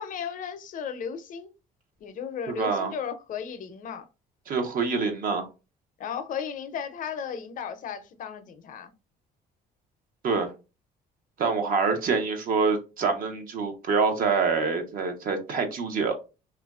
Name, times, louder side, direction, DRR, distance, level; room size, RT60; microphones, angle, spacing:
voice 1, 0.0-1.5 2.0-4.1 6.0-8.9, left 7 dB, 55° left, 0.5 m, -35 dB
voice 2, 2.5-2.9 4.5-5.5 10.2-10.5 11.4-16.1, right 4 dB, 55° right, 0.7 m, -26 dB
3.0 x 2.4 x 2.3 m
cardioid pair, 110°, 17 cm